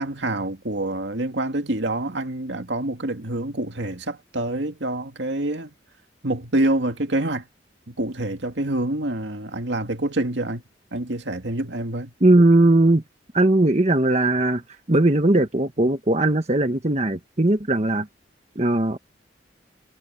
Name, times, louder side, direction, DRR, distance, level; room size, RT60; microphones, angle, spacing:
voice 1, 0.0-5.7 6.2-7.4 7.9-10.6 10.9-12.1, right 1 dB, 70° right, 2.2 m, -26 dB
voice 2, 12.2-13.0 13.3-14.6 14.9-18.1 18.6-19.0, right 2 dB, 35° right, 1.2 m, -18 dB
head